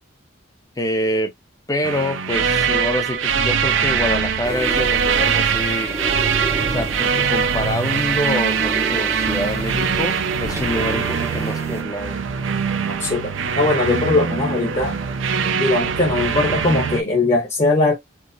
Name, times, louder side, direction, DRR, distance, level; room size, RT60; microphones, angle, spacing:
voice 1, 0.8-1.3 1.7-6.0 6.7-12.3, left 1 dB, 20° left, 0.6 m, -26 dB
sound 1, 1.8-17.0, right 6 dB, 70° right, 0.5 m, -22 dB
sound 2, 4.4-11.8, right 1 dB, 15° right, 0.7 m, -32 dB
voice 2, 13.0-14.9 15.6-17.9, left 2 dB, 35° left, 1.0 m, -20 dB
4.6 x 2.1 x 2.6 m
head